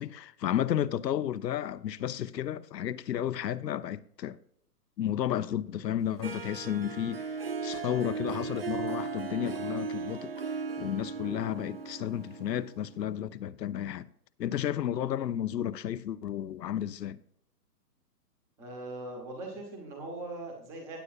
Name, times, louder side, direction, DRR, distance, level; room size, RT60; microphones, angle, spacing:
voice 1, 0.0-4.4 5.0-10.3 10.8-14.1 14.4-17.2, left 10 dB, 80° left, 0.8 m, -32 dB
Harp, 6.2-13.1, right 5 dB, 40° right, 0.5 m, -37 dB
voice 2, 18.6-21.0, right 2 dB, 5° right, 0.8 m, -41 dB
17.0 x 8.1 x 2.4 m
hypercardioid pair, 165°, 49 cm